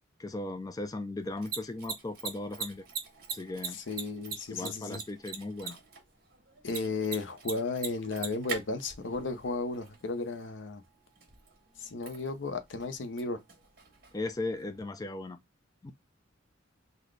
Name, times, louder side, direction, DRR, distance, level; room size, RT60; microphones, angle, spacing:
voice 1, 0.2-2.8 3.3-3.8 4.5-5.8 14.1-15.4 15.8-15.9, left 2 dB, 20° left, 0.4 m, -37 dB
Mechanisms, 1.2-14.8, right 6 dB, 55° right, 1.3 m, -44 dB
voice 2, 3.7-5.0 6.6-10.8 11.8-13.4, left 3 dB, 75° left, 0.7 m, -34 dB
3.9 x 2.2 x 3.1 m
head